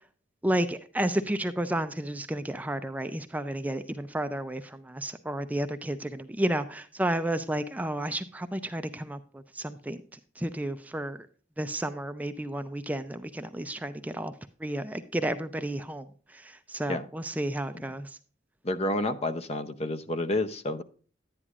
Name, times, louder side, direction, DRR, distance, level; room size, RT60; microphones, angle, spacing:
voice 1, 0.4-10.0 10.4-11.2 11.6-14.3 14.6-18.2, right 1 dB, 10° right, 9 dB, 0.4 m, -32 dB
voice 2, 18.6-20.8, left 1 dB, 35° left, 11 dB, 0.6 m, -29 dB
11.0 x 9.9 x 2.4 m, 0.42 s
head